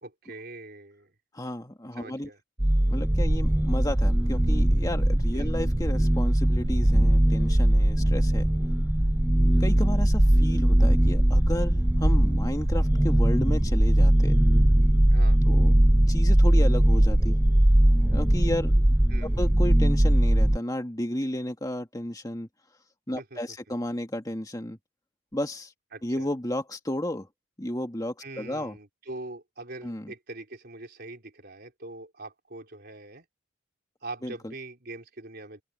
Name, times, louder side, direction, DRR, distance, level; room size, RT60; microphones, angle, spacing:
voice 1, 0.0-1.1 2.0-2.4 5.3-5.5 15.1-15.4 19.1-19.4 23.2-23.4 25.9-26.3 28.2-33.2 34.0-35.6, right 2 dB, 50° right, 4.1 m, -42 dB
voice 2, 1.3-2.3 2.9-8.5 9.6-14.4 15.5-15.7 16.1-17.4 18.1-19.0 19.2-22.5 23.1-24.8 25.3-25.7 26.0-27.3 27.6-28.8 29.8-30.1 34.2-34.5, left 1 dB, 20° left, 1.9 m, -33 dB
sound 1, 2.6-20.6, right 1 dB, 10° right, 0.4 m, -20 dB
open air
head